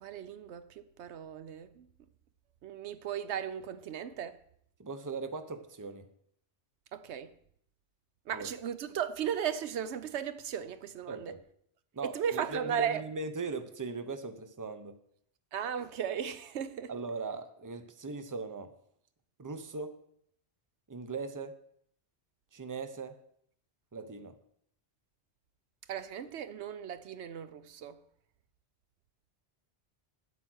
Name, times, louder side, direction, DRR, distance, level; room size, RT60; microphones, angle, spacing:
voice 1, 0.0-1.9 2.6-4.4 6.9-7.3 8.3-11.3 12.0-13.0 15.5-16.9 25.9-28.0, right 8 dB, 75° right, 0.9 m, -36 dB
voice 2, 4.8-6.0 8.3-8.5 11.1-11.4 11.9-15.0 16.9-18.7 19.4-20.0 20.9-21.5 22.5-23.1 23.9-24.3, right 3 dB, 20° right, 0.7 m, -39 dB
10.5 x 7.8 x 6.3 m
omnidirectional pair, 1.2 m